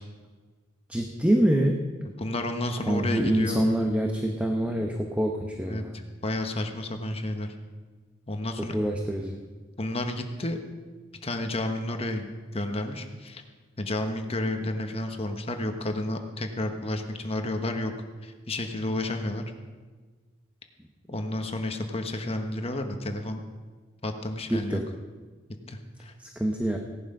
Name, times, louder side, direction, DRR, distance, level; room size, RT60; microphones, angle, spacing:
voice 1, 0.9-1.8 2.9-6.0 8.7-9.4 24.5-24.8 26.2-26.8, right 1 dB, 10° right, 2 dB, 1.0 m, -25 dB
voice 2, 2.2-3.6 5.7-5.8 6.2-7.5 8.3-8.8 9.8-10.6 11.2-13.4 13.8-17.9 18.2-19.4 21.1-23.4 24.0-24.8 25.7-26.1, left 1 dB, 35° left, 5 dB, 1.2 m, -31 dB
17.0 x 11.0 x 5.4 m, 1.4 s
head